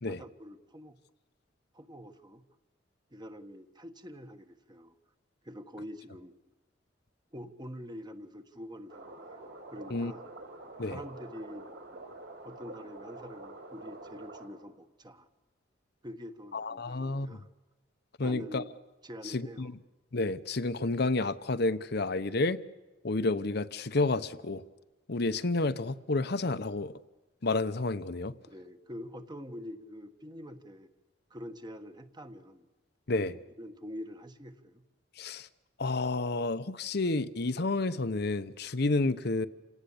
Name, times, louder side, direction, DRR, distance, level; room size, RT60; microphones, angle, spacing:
voice 1, 0.1-1.0 1.7-2.4 3.1-4.9 5.4-6.3 7.3-10.2 10.8-11.7 12.4-15.3 16.0-17.5 18.2-18.7 19.0-19.7 28.4-30.9 31.3-32.7 33.6-34.8, equal, 25° right, 8 dB, 1.4 m, -45 dB
sound 1, 8.9-14.5, right 2 dB, 65° right, 4.6 m, -47 dB
voice 2, 16.5-17.4 18.2-18.6 19.3-19.7 20.1-22.6 23.0-24.6 25.1-26.9 27.4-28.3 33.1-33.4 35.2-35.5 35.8-39.5, left 2 dB, 60° left, 11 dB, 0.9 m, -30 dB
28.0 x 18.0 x 8.5 m, 1.2 s
head